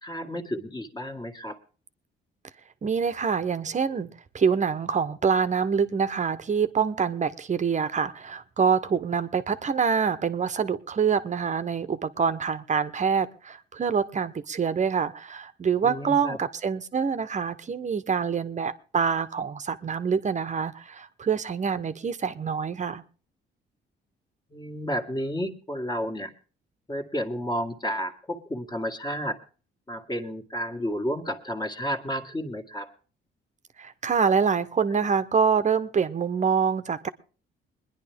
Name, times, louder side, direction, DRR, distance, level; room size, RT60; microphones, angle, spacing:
voice 1, 0.0-1.6 3.9-4.0 15.8-16.4 24.5-26.3 26.9-29.4 29.9-32.9 34.9-35.0, equal, 20° left, 5 dB, 1.9 m, -31 dB
voice 2, 2.8-23.0 33.8-37.1, right 6 dB, 35° right, 12 dB, 0.9 m, -26 dB
22.0 x 10.5 x 3.5 m, 0.37 s
cardioid pair, 90°, 20 cm